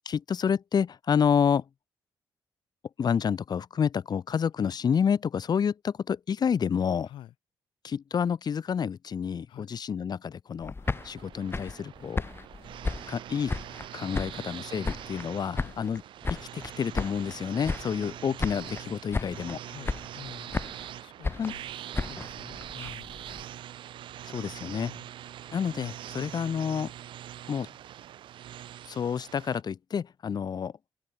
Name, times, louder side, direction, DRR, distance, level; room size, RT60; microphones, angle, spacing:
voice 1, 0.1-1.6 3.0-7.1 7.8-10.7 11.0-12.2 13.1-13.6 13.9-16.0 16.3-19.6 21.4-21.5 24.3-24.9 25.5-26.9 27.5-27.7 28.9-30.7, left 7 dB, 55° left, 2.3 m, -29 dB
sound 1, 10.6-13.9 14.1-15.3 15.6-17.4 17.6-18.1 18.4-18.9 19.1-19.6 19.9-20.9 21.2-23.4, left 3 dB, 30° left, 2.3 m, -34 dB
sound 2, 10.8-29.6, right 12 dB, 80° right, 3.1 m, -43 dB
voice 2, 19.6-20.5 20.9-21.7 22.0-23.4 24.7-25.1 30.3-30.4, left 12 dB, 85° left, 6.2 m, -49 dB
open air
cardioid pair, 65°, 8 cm